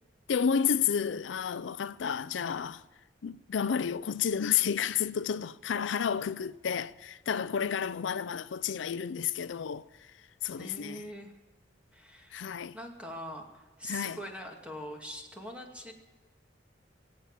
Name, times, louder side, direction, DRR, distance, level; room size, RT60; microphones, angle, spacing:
voice 1, 0.3-2.8 3.2-9.8 10.4-11.0 12.3-12.8 13.9-14.2, left 7 dB, 85° left, 0.4 m, -31 dB
voice 2, 10.6-11.3 11.9-12.4 12.7-15.9, equal, 5° right, 2.2 m, -43 dB
23.0 x 8.7 x 7.2 m
head